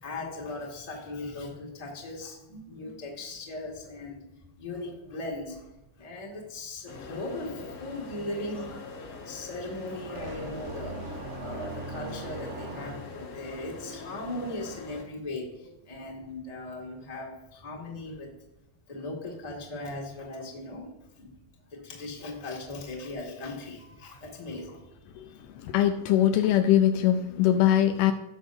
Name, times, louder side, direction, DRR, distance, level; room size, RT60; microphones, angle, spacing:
voice 1, 0.0-4.2 4.6-5.7 6.0-8.8 9.2-18.3 18.9-20.9 21.2-21.3 21.7-25.4, left 2 dB, 15° left, -2 dB, 1.4 m, -38 dB
sound 1, 6.9-15.0, left 4 dB, 55° left, 1.6 m, -43 dB
sound 2, 10.2-13.3, right 3 dB, 75° right, 2.5 m, -40 dB
voice 2, 25.6-28.1, left 11 dB, 80° left, 7 dB, 2.0 m, -22 dB
17.5 x 6.2 x 2.6 m, 0.96 s
omnidirectional pair, 4.0 m